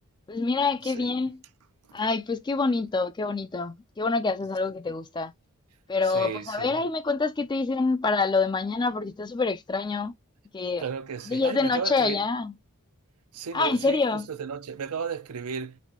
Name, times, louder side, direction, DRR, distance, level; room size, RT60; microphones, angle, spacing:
voice 1, 0.3-1.4 1.9-5.3 5.9-10.1 10.5-10.8 11.3-12.5 13.5-14.3, left 4 dB, 20° left, 0.4 m, -26 dB
voice 2, 6.0-6.8 10.8-12.2 13.3-15.8, right 6 dB, 80° right, 0.5 m, -34 dB
4.1 x 2.2 x 2.8 m
head